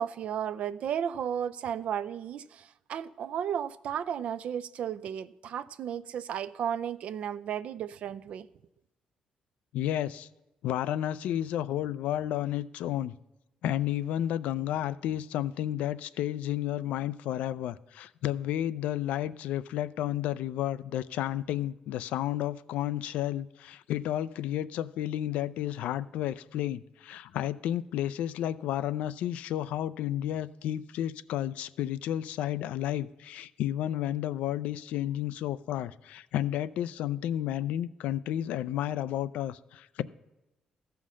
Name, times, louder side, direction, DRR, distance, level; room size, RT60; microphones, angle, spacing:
voice 1, 0.0-8.5, right 9 dB, 65° right, 0.4 m, -34 dB
voice 2, 9.7-10.3 10.6-13.2 13.6-40.0, left 12 dB, 90° left, 0.4 m, -32 dB
14.0 x 5.7 x 6.2 m
cardioid pair, 105°, 2 cm